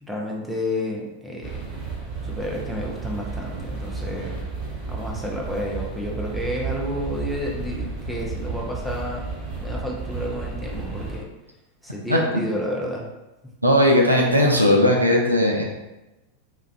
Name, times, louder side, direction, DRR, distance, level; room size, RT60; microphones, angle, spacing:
voice 1, 0.0-1.8 2.2-4.4 4.9-9.3 9.6-11.3 11.8-13.1, equal, ahead, -3 dB, 0.5 m, -30 dB
sound 1, 1.4-11.2, right 4 dB, 20° right, 1.2 m, -32 dB
voice 2, 13.6-15.6, left 1 dB, 85° right, -1 dB, 0.4 m, -17 dB
2.4 x 2.2 x 2.4 m, 1.0 s
figure-of-eight pair, 90°, 0 cm